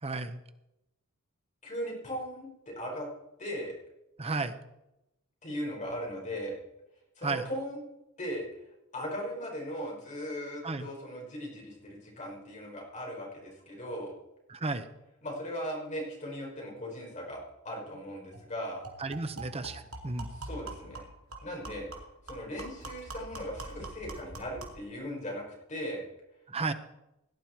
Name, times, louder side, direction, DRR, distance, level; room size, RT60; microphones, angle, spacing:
voice 1, 0.0-0.4 4.2-4.6 7.2-7.4 10.6-10.9 14.5-14.8 19.0-20.3 26.5-26.7, right 3 dB, 30° right, 10 dB, 0.9 m, -33 dB
voice 2, 1.6-3.1 3.4-3.7 5.4-6.6 7.2-7.8 8.2-8.5 8.9-14.1 15.2-18.8 20.3-21.1 21.4-21.9 22.3-25.4 25.7-26.0, equal, 35° left, -2 dB, 5.4 m, -38 dB
sound 1, 17.9-18.0 18.3-18.5 18.8-24.9, right 2 dB, 80° right, 2.9 m, -44 dB
17.5 x 10.5 x 4.6 m, 0.89 s
head